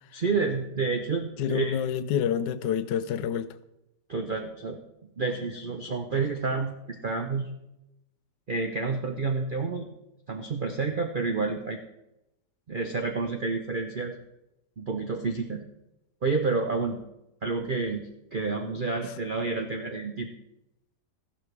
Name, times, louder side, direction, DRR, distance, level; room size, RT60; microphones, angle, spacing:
voice 1, 0.1-1.8 4.1-4.8 5.2-7.5 8.5-9.9 10.3-11.8 12.7-14.2 14.8-15.6 16.2-17.0 17.4-20.3, right 4 dB, 65° right, 0.5 m, -29 dB
voice 2, 1.4-3.5, left 9 dB, 85° left, 1.3 m, -27 dB
14.5 x 11.5 x 3.3 m
omnidirectional pair, 1.9 m